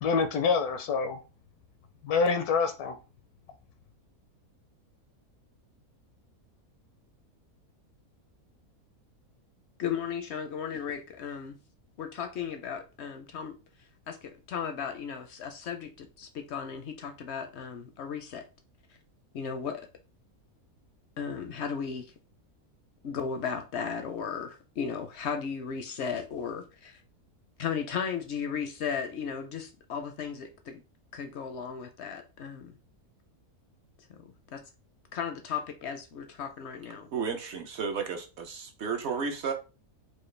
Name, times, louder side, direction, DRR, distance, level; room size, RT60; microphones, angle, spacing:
voice 1, 0.0-1.2 2.0-3.0, left 5 dB, 85° left, 1.1 m, -26 dB
voice 2, 9.8-11.6 12.0-13.5 14.1-18.4 19.3-19.8 21.2-22.1 23.0-27.0 27.6-30.8 31.1-32.8 34.5-34.6 35.1-37.1, left 7 dB, 65° left, 0.6 m, -35 dB
voice 3, 37.1-39.5, right 5 dB, 60° right, 0.8 m, -33 dB
4.7 x 2.3 x 3.2 m
omnidirectional pair, 1.6 m